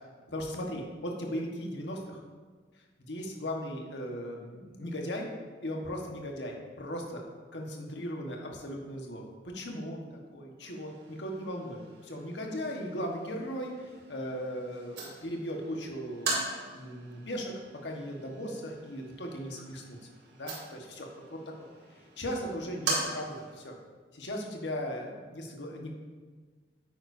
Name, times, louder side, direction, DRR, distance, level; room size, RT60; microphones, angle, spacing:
voice 1, 0.3-2.2 3.0-5.3 5.6-7.2 7.5-10.1 10.3-17.5 17.8-20.0 20.4-21.4 22.2-23.8 24.1-25.9, equal, 90° left, 0 dB, 1.4 m, -37 dB
sound 1, 10.6-23.6, right 3 dB, 80° right, 2.5 m, -40 dB
9.7 x 8.9 x 2.7 m, 1.5 s
head